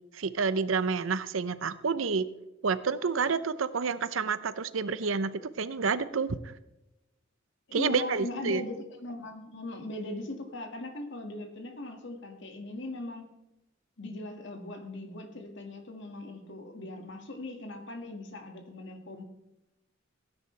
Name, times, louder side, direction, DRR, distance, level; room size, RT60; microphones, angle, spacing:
voice 1, 0.2-2.3 2.6-6.4 7.7-8.6, right 5 dB, 85° right, 14 dB, 0.7 m, -29 dB
voice 2, 7.7-13.3 14.0-19.2, left 2 dB, 65° left, 4 dB, 2.0 m, -39 dB
17.0 x 9.7 x 3.3 m, 0.94 s
head